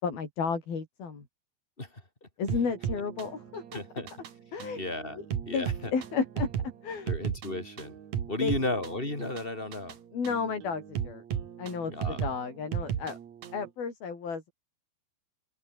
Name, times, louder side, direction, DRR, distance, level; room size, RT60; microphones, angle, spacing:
voice 1, 0.0-1.3 2.4-3.8 4.5-4.8 5.5-5.7 5.9-6.5 6.8-7.1 8.4-8.5 10.1-11.2 11.6-13.2 13.5-14.5, left 5 dB, 50° left, 6.9 m, -32 dB
sound 1, 2.5-13.7, right 9 dB, 50° right, 2.5 m, -36 dB
voice 2, 3.7-4.1 4.8-5.2 5.5-5.9 7.1-8.0 8.3-9.9 11.9-12.2, left 2 dB, 10° left, 4.2 m, -34 dB
open air
omnidirectional pair, 5.4 m